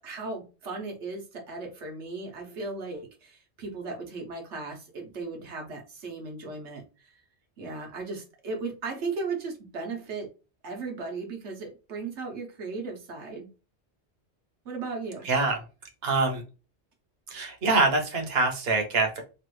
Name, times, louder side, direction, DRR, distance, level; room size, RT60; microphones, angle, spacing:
voice 1, 0.0-7.2 7.6-10.3 10.6-13.5 14.6-15.2, right 3 dB, 85° right, 2 dB, 1.3 m, -36 dB
voice 2, 15.2-15.6 16.0-16.4 17.3-19.2, right 3 dB, 65° right, 3 dB, 1.0 m, -25 dB
3.1 x 2.4 x 3.1 m, 0.32 s
omnidirectional pair, 1.1 m